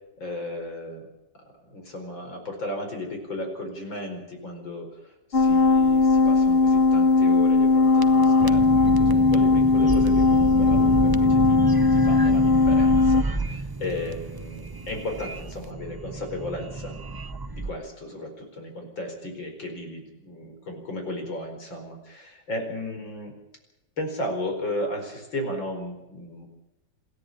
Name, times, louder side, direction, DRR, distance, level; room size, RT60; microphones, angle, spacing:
voice 1, 0.2-1.1 1.7-11.6 11.9-17.0 17.5-23.3 24.0-26.5, left 1 dB, 80° left, 3 dB, 5.4 m, -35 dB
sound 1, 5.3-13.2, left 3 dB, 40° left, 1.0 m, -19 dB
sound 2, 7.8-17.7, right 3 dB, 25° right, 0.5 m, -30 dB
27.5 x 10.5 x 10.0 m, 0.94 s
omnidirectional pair, 2.1 m